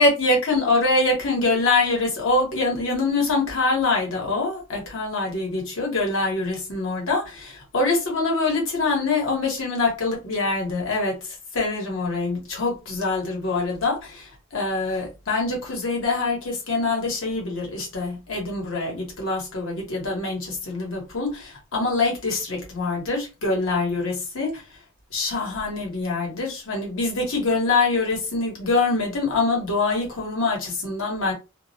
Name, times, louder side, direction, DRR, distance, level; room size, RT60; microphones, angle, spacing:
voice 1, 0.0-11.2 11.5-24.6 25.1-31.3, left 3 dB, 65° left, 1.0 m, -24 dB
2.3 x 2.0 x 2.6 m
head